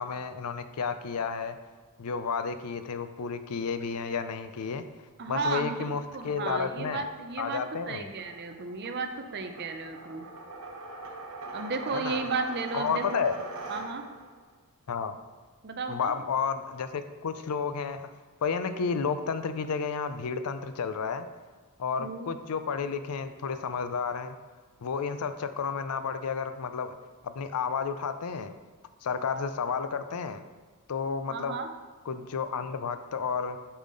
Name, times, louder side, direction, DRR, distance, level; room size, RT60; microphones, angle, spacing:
voice 1, 0.0-1.6 2.0-4.8 5.3-7.0 7.4-8.1 11.9-12.2 12.7-13.4 14.9-15.2 15.9-18.0 18.4-21.3 21.8-24.4 24.8-27.0 27.2-28.5 29.0-30.4 30.9-31.6 32.1-33.6, left 5 dB, 85° left, 10 dB, 0.5 m, -31 dB
voice 2, 5.2-10.3 11.5-13.2 13.7-14.0 15.6-16.1 22.0-22.3 31.3-31.7, right 4 dB, 50° right, 6 dB, 0.6 m, -34 dB
sound 1, 6.0-14.3, right 2 dB, 75° right, 1.1 m, -42 dB
7.1 x 5.6 x 3.8 m, 1.4 s
head